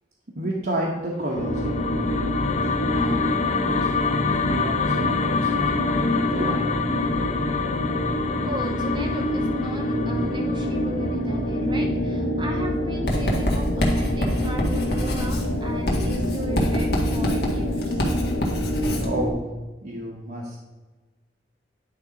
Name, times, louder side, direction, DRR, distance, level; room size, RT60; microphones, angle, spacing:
voice 1, 0.3-1.8 2.9-3.9 4.5-6.6 19.0-19.5 19.8-20.6, right 1 dB, 60° right, -3 dB, 1.1 m, -31 dB
sound 1, 1.2-11.5, left 5 dB, 40° left, 0.5 m, -27 dB
sound 2, 1.3-19.3, left 1 dB, 85° left, 1.2 m, -26 dB
voice 2, 8.4-18.2 19.9-20.1, right 1 dB, 25° right, 2 dB, 0.6 m, -37 dB
Writing, 13.1-19.1, equal, 60° left, 1.6 m, -26 dB
9.8 x 3.6 x 5.1 m, 1.2 s
head